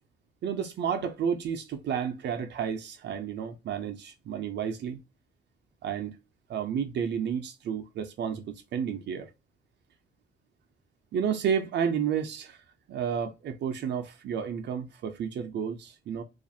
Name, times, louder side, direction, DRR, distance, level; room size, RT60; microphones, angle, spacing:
voice 1, 0.4-5.0 5.8-6.2 6.5-9.3 11.1-12.6 12.9-16.2, right 7 dB, 60° right, 0.5 m, -31 dB
2.4 x 2.4 x 2.6 m
cardioid pair, 90°, 20 cm